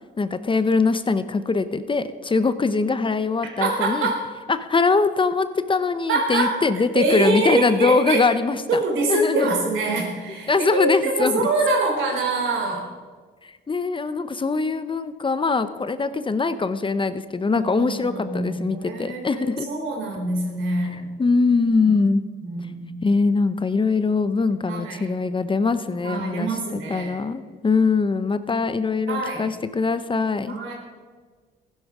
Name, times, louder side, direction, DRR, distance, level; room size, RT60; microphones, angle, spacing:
voice 1, 0.2-4.1 4.5-8.8 9.1-9.5 10.5-11.5 13.4-19.7 20.8-22.2 23.0-30.5, left 4 dB, 25° left, 12 dB, 0.7 m, -22 dB
voice 2, 3.6-4.3 6.1-6.7 6.9-8.2 8.7-12.9 17.5-21.1 21.8-22.1 22.4-22.8 24.6-25.1 26.0-27.2 29.1-29.5 30.4-30.7, right 2 dB, 85° right, 0 dB, 3.6 m, -25 dB
15.5 x 11.0 x 4.9 m, 1.5 s
cardioid pair, 90°, 20 cm